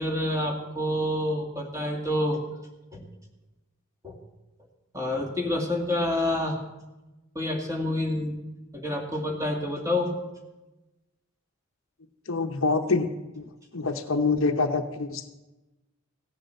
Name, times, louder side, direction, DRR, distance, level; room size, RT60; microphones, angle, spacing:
voice 1, 0.0-2.4 2.9-3.0 4.0-4.2 4.9-6.6 7.3-8.4 8.7-10.1, left 1 dB, 15° right, 1 dB, 2.2 m, -28 dB
voice 2, 12.3-13.1 13.4-15.3, left 3 dB, 60° left, 7 dB, 0.9 m, -26 dB
16.5 x 8.0 x 7.6 m, 1.1 s
head